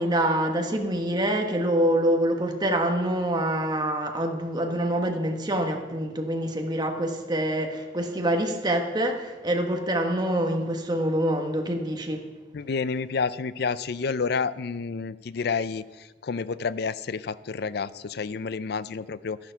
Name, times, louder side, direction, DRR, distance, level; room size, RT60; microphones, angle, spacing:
voice 1, 0.0-12.2, right 1 dB, 25° right, 3 dB, 1.4 m, -26 dB
voice 2, 12.5-15.8 16.2-19.4, left 5 dB, 60° left, 16 dB, 0.5 m, -29 dB
13.0 x 10.5 x 5.8 m, 1.2 s
head